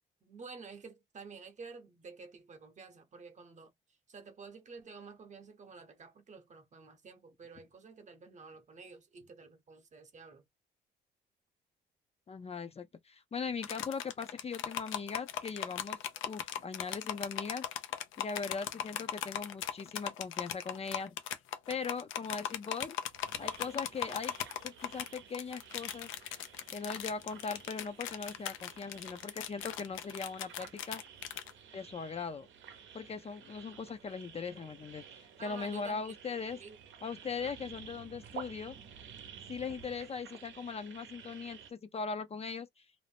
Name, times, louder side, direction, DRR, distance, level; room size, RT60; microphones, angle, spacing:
voice 1, 0.2-3.7 4.1-10.5 35.4-36.8 37.4-37.5, right 4 dB, 35° right, 0.8 m, -51 dB
voice 2, 12.3-16.0 16.2-17.9 18.2-21.2 21.7-23.0 23.4-24.3 24.6-26.1 26.7-31.0 31.7-32.5 32.9-36.6 37.0-38.8 39.5-42.9, left 5 dB, 30° left, 0.5 m, -40 dB
sound 1, 13.6-31.5, left 10 dB, 85° left, 0.5 m, -39 dB
sound 2, 23.1-41.7, right 7 dB, 75° right, 0.7 m, -53 dB
2.6 x 2.0 x 3.2 m
cardioid pair, 90°, 20 cm